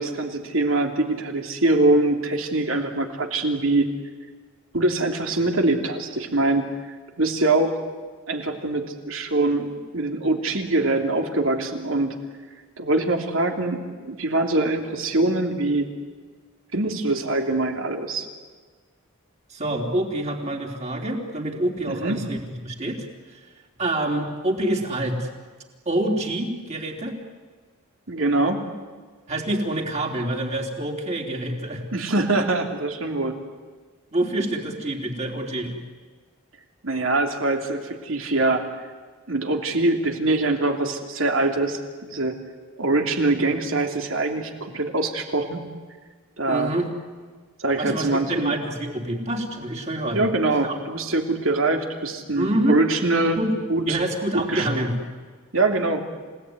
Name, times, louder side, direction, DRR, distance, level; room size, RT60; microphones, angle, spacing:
voice 1, 0.0-3.9 4.7-6.7 7.2-7.8 8.3-12.1 12.8-15.9 16.7-18.3 21.9-22.2 28.1-28.6 31.9-33.4 36.8-38.6 39.3-42.4 42.8-45.6 46.4-46.7 47.6-48.5 50.1-53.4 53.7-54.0 54.3-54.7 55.5-56.0, right 2 dB, 70° right, 4 dB, 3.0 m, -23 dB
voice 2, 19.5-23.4 23.8-25.3 25.9-27.2 29.3-31.8 34.1-35.7 46.5-46.9 47.8-50.3 50.6-50.8 52.4-52.8 53.4-53.5 53.9-54.9, right 1 dB, 30° right, 2 dB, 3.5 m, -26 dB
29.5 x 17.5 x 9.8 m, 1.5 s
head